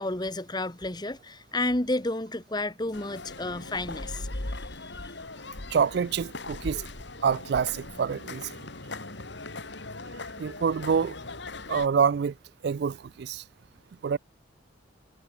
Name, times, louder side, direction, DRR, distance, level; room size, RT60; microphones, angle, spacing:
voice 1, 0.0-5.1, left 2 dB, 20° left, 1.4 m, -31 dB
sound 1, 2.9-11.9, left 2 dB, 65° left, 2.6 m, -39 dB
voice 2, 5.7-6.8 7.2-8.5 10.4-11.2 11.7-12.3 12.6-13.4 14.0-14.2, right 6 dB, 55° right, 0.3 m, -26 dB
head